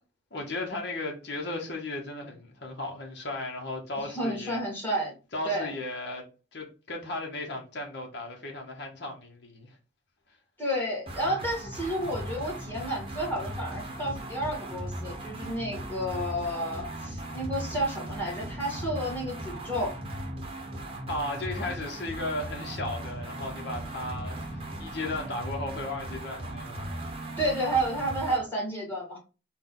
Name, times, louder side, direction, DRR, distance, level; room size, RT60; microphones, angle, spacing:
voice 1, 0.3-4.6 5.3-9.8 21.1-26.9, left 2 dB, 65° left, 1.0 m, -35 dB
voice 2, 4.0-5.2 5.4-5.7 10.6-19.9 27.4-29.2, right 1 dB, 10° left, 1.7 m, -31 dB
Thrash Metal Loop, 11.1-28.5, right 1 dB, 30° right, 0.8 m, -38 dB
3.9 x 2.3 x 3.7 m
head